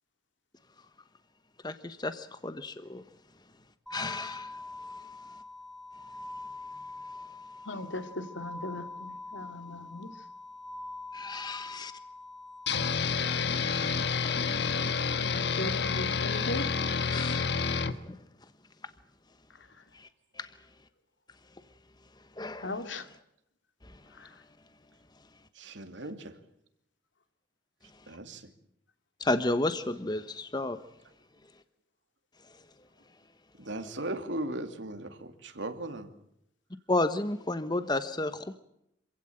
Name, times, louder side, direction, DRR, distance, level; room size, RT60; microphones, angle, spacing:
voice 1, 1.6-3.0 3.9-4.6 11.1-11.9 14.2-14.4 14.7-14.9 17.1-17.5 18.0-18.2 19.9-20.1 20.4-20.5 22.4-22.7 29.2-30.8 36.9-38.6, left 2 dB, 20° left, 11 dB, 1.1 m, -32 dB
sound 1, 3.9-12.9, left 2 dB, ahead, 1.6 m, -44 dB
voice 2, 7.6-10.1 14.6-17.0 22.6-23.1 24.1-24.3, left 2 dB, 80° left, 8 dB, 2.5 m, -39 dB
sound 2, 12.7-17.9, left 5 dB, 60° left, 1.4 m, -29 dB
voice 3, 25.5-26.4 28.1-28.5 33.6-36.1, right 1 dB, 80° right, 7 dB, 2.7 m, -37 dB
26.5 x 16.5 x 8.9 m, 0.78 s
head